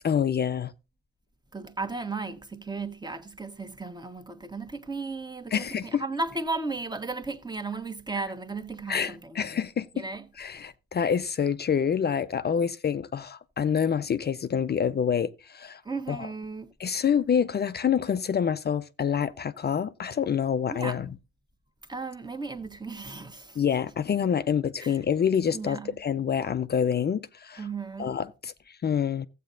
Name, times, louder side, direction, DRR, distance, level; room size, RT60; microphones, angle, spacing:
voice 1, 0.0-0.7 5.5-6.0 8.9-10.0 10.4-15.8 16.1-16.3 16.8-21.1 23.6-27.7 28.0-29.3, left 7 dB, 35° left, 0.5 m, -27 dB
voice 2, 1.5-9.5 9.9-10.2 15.8-16.7 20.7-21.0 21.9-23.6 24.8-24.9 25.5-25.9 27.6-28.1, right 3 dB, 15° right, 1.3 m, -35 dB
14.0 x 8.3 x 2.6 m
cardioid pair, 90°, 30 cm